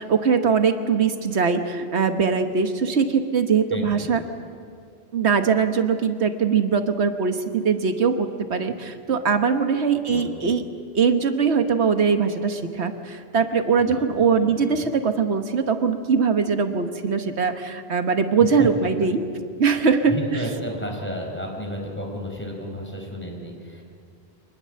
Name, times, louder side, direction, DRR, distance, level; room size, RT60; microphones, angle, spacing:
voice 1, 0.0-4.2 5.1-10.6 10.9-19.2 19.6-20.2, right 5 dB, 85° right, 7 dB, 1.5 m, -21 dB
voice 2, 3.7-4.1 10.0-10.5 13.8-14.0 14.4-14.6 18.4-18.7 20.1-23.8, equal, 10° left, 0 dB, 4.5 m, -32 dB
25.5 x 20.0 x 7.7 m, 2.2 s
omnidirectional pair, 1.1 m